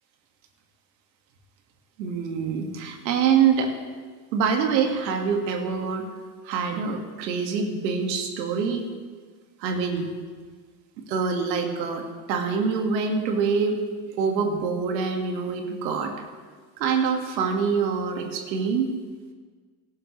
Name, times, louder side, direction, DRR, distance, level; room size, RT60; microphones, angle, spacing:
voice 1, 2.0-3.7 4.3-6.1 6.4-8.8 9.6-10.1 11.1-13.8 14.1-16.1 16.8-18.9, right 6 dB, 85° right, 3 dB, 2.0 m, -25 dB
17.5 x 12.0 x 3.3 m, 1.5 s
hypercardioid pair, 85°, 50 cm